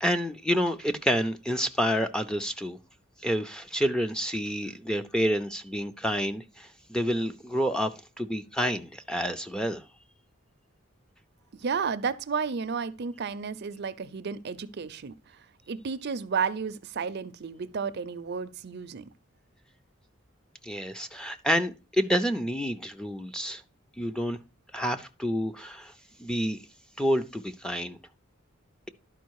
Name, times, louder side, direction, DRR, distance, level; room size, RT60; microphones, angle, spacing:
voice 1, 0.0-2.8 3.2-7.9 8.2-9.8 20.6-23.6 24.0-24.4 24.7-25.9 26.2-26.6 27.0-28.0, equal, 5° left, 0.5 m, -28 dB
voice 2, 11.5-15.1 15.7-19.1, right 5 dB, 55° right, 0.5 m, -32 dB
11.5 x 4.8 x 4.7 m
head